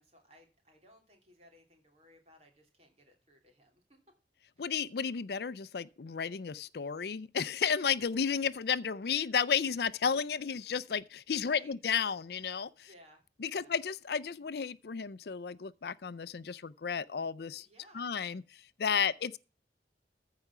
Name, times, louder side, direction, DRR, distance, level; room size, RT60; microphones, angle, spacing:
voice 1, 0.0-4.0 4.6-4.7 11.4-11.7 12.8-13.7 17.6-18.1 18.9-19.1, equal, 35° right, 3.0 m, -61 dB
voice 2, 4.6-12.9 13.4-17.7 17.9-18.4 18.8-19.4, left 6 dB, 65° left, 0.5 m, -33 dB
14.5 x 4.9 x 5.9 m
head